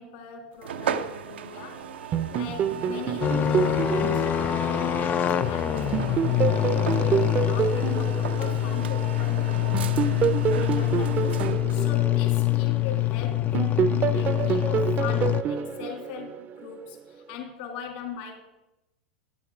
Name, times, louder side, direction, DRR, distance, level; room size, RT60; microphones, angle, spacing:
voice 1, 0.0-1.9 2.3-18.5, left 6 dB, 60° left, 2 dB, 2.1 m, -40 dB
sound 1, 0.6-11.9, right 7 dB, 80° right, 0.7 m, -36 dB
sound 2, 2.1-5.5 5.9-9.2 9.7-13.1 13.5-16.8, right 8 dB, 35° right, 0.6 m, -28 dB
Tuktuk exhaust pipe, 3.2-15.4, left 13 dB, 30° left, 0.5 m, -25 dB
11.0 x 8.5 x 5.1 m, 0.96 s
hypercardioid pair, 100°, 6 cm